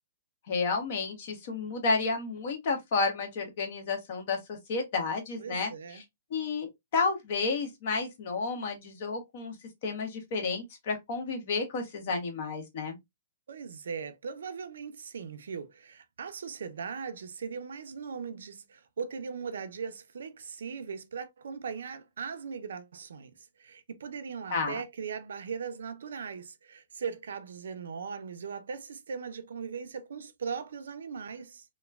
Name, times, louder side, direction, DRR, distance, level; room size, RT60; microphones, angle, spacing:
voice 1, 0.5-5.7 6.3-9.5 9.8-13.0 24.5-24.8, left 4 dB, 50° left, 1.0 m, -31 dB
voice 2, 5.4-6.0 13.5-31.6, right 6 dB, 80° right, 0.4 m, -39 dB
3.0 x 2.1 x 2.2 m
hypercardioid pair, 150°, 0 cm